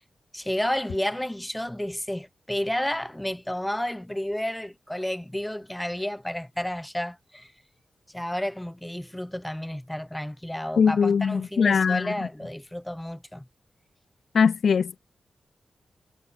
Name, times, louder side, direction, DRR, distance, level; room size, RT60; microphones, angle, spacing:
voice 1, 0.3-7.5 8.1-13.5, left 1 dB, 5° left, 0.9 m, -31 dB
voice 2, 10.8-12.1 14.3-15.0, left 6 dB, 70° left, 0.3 m, -21 dB
wide cardioid pair, 110°, 0 cm